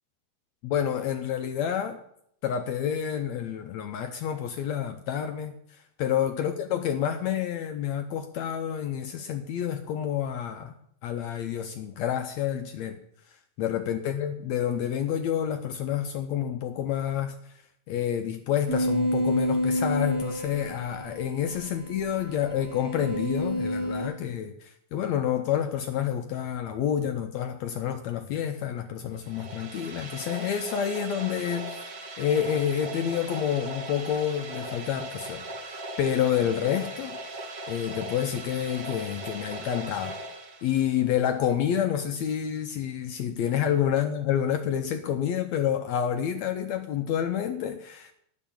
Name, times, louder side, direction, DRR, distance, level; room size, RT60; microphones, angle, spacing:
voice 1, 0.6-2.0 2.4-5.6 6.0-10.7 11.0-13.0 13.6-17.4 17.9-31.8 32.2-40.2 40.6-48.1, left 9 dB, 75° left, 6 dB, 1.7 m, -28 dB
sound 1, 18.7-24.1, equal, 30° left, 6.6 m, -29 dB
sound 2, 29.2-41.1, right 2 dB, 50° right, 2.2 m, -39 dB
11.0 x 6.5 x 8.6 m, 0.71 s
omnidirectional pair, 3.9 m